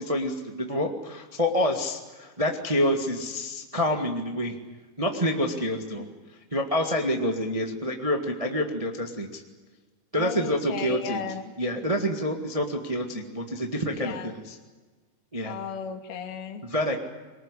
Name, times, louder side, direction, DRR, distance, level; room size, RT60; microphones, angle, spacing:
voice 1, 0.0-4.6 5.0-6.1 6.5-9.4 10.1-11.2 11.6-14.5 15.3-15.5 16.6-17.0, equal, 35° right, 3 dB, 0.5 m, -27 dB
voice 2, 10.2-11.5 13.9-14.3 15.5-16.6, left 6 dB, 90° left, 6 dB, 3.9 m, -35 dB
23.5 x 20.0 x 9.9 m, 1.3 s
omnidirectional pair, 4.3 m